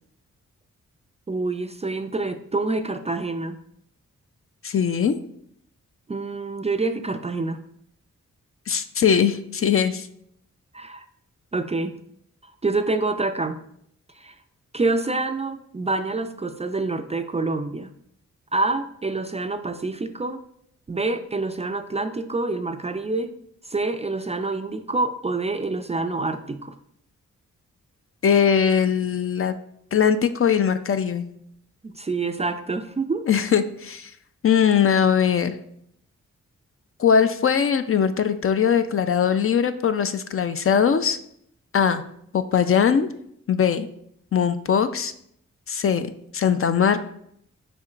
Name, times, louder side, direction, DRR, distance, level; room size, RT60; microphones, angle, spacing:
voice 1, 1.3-3.6 6.1-7.6 10.7-11.0 11.5-12.0 12.6-13.6 14.2-14.4 14.7-17.9 18.5-20.4 20.9-23.3 23.7-26.7 31.8-33.3, right 3 dB, 20° right, 8 dB, 0.3 m, -27 dB
voice 2, 4.6-5.2 8.7-10.1 28.2-29.5 29.9-31.2 33.3-34.1 34.4-35.6 37.0-41.2 41.7-42.0 42.3-43.1 43.5-43.9 44.3-45.1 45.7-47.0, left 7 dB, 45° left, 10 dB, 0.4 m, -20 dB
5.1 x 4.3 x 2.4 m, 0.70 s
supercardioid pair, 45°, 32 cm